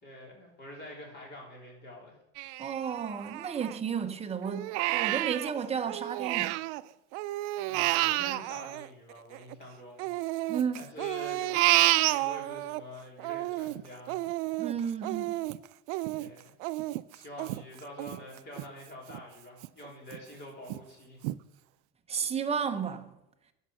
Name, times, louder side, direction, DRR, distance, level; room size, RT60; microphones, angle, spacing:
voice 1, 0.0-2.2 7.7-10.1 10.3-10.5 10.7-14.2 16.2-16.5 17.1-21.2, left 1 dB, 30° left, 3.5 m, -46 dB
Crying sobbing, 2.4-4.0 4.4-6.8 7.1-9.5 10.0-12.8 13.2-18.7 19.1-19.2 19.6-20.2 20.7-20.8 21.2-21.4, right 18 dB, 70° right, 0.5 m, -30 dB
voice 2, 2.6-6.6 10.5-10.9 14.6-15.4 22.1-23.1, right 7 dB, 15° right, 0.8 m, -33 dB
10.0 x 5.6 x 6.3 m
supercardioid pair, 130°, 35 cm